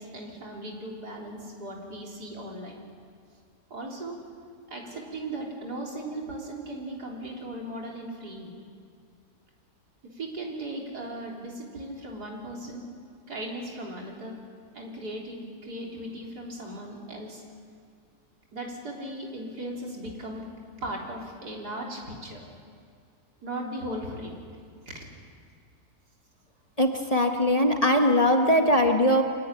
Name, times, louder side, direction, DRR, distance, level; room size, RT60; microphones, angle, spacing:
voice 1, 0.0-2.8 3.7-4.2 4.7-8.5 10.0-12.8 13.3-14.3 14.7-17.4 18.5-20.4 20.8-22.4 23.4-24.4 24.9-25.1, right 1 dB, 85° right, -1 dB, 4.4 m, -37 dB
voice 2, 26.8-29.2, left 1 dB, 25° left, 3 dB, 1.4 m, -21 dB
24.0 x 16.5 x 10.0 m, 2.2 s
omnidirectional pair, 1.7 m